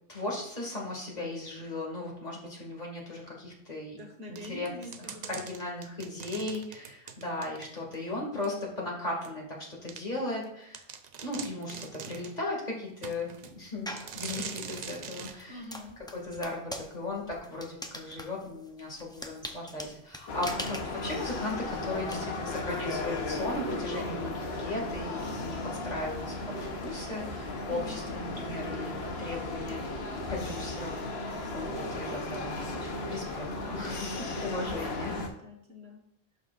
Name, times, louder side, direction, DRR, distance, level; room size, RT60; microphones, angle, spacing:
voice 1, 0.1-4.0 4.3-10.8 11.2-15.6 16.1-25.6 25.8-28.9 29.2-35.2, left 2 dB, 45° left, -2 dB, 2.2 m, -37 dB
voice 2, 4.0-5.4 15.5-16.0 27.7-28.0 34.6-36.0, equal, 80° right, -1 dB, 1.6 m, -45 dB
sound 1, 4.4-8.0 8.4-8.5 9.2-9.3 9.9-10.0 10.4-10.5 10.7-12.4 13.0-13.5 14.0-15.4, right 6 dB, 50° right, 0.6 m, -42 dB
sound 2, 13.9-14.2 14.7-22.2, equal, 5° left, 0.5 m, -42 dB
sound 3, 20.3-35.3, left 2 dB, 80° left, 1.2 m, -35 dB
11.5 x 5.8 x 2.5 m, 0.75 s
omnidirectional pair, 1.0 m